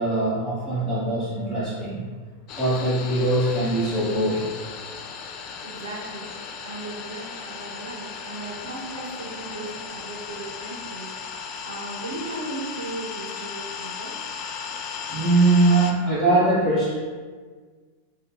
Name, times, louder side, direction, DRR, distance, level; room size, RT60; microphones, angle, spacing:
voice 1, 0.0-2.0 2.6-4.4 15.1-16.9, right 2 dB, 5° left, -16 dB, 1.3 m, -21 dB
sound 1, 2.5-15.9, left 6 dB, 45° left, 0.3 m, -36 dB
voice 2, 5.6-6.2 6.6-14.1, right 2 dB, 90° right, -1 dB, 0.6 m, -37 dB
3.5 x 2.2 x 2.9 m, 1.5 s
hypercardioid pair, 110°, 0 cm